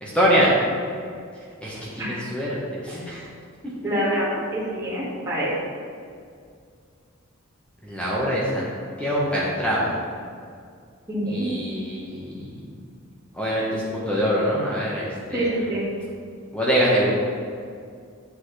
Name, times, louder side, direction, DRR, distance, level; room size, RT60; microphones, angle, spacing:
voice 1, 0.0-0.6 1.6-3.3 7.8-10.0 11.2-12.5 13.3-15.7 16.5-17.1, equal, 5° left, -7 dB, 1.4 m, -24 dB
voice 2, 3.8-5.5 11.1-11.5 15.3-15.9, right 1 dB, 15° right, -12 dB, 2.0 m, -26 dB
8.4 x 7.2 x 3.4 m, 2.2 s
head